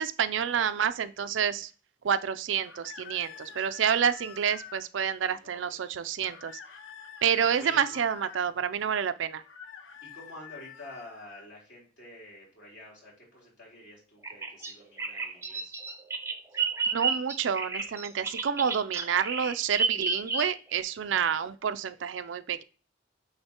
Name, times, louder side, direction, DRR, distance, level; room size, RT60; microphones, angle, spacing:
voice 1, 0.0-1.7 2.0-6.5 7.2-9.4 16.9-22.6, right 7 dB, 80° right, 12 dB, 0.4 m, -28 dB
sound 1, 2.6-4.9 6.2-8.4 9.4-11.5, left 7 dB, 90° left, 0.7 m, -47 dB
voice 2, 5.2-5.8 7.6-8.0 10.0-15.7, left 1 dB, 65° left, -3 dB, 3.6 m, -48 dB
Bird vocalization bird call bird song, 14.2-20.8, right 5 dB, 15° right, 0.6 m, -31 dB
8.8 x 3.7 x 2.9 m, 0.36 s
head